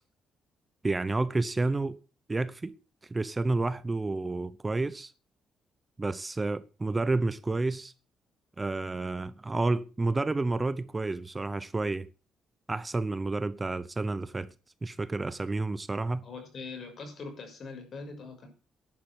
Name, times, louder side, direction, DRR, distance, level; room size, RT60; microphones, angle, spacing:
voice 1, 0.8-2.0 2.3-2.8 3.1-5.1 6.0-7.9 8.6-12.1 12.7-14.5 14.8-16.3, right 3 dB, 20° right, 0.9 m, -30 dB
voice 2, 16.2-18.5, left 4 dB, 50° left, 6.3 m, -42 dB
11.0 x 9.6 x 7.9 m
cardioid pair, 90°, 0 cm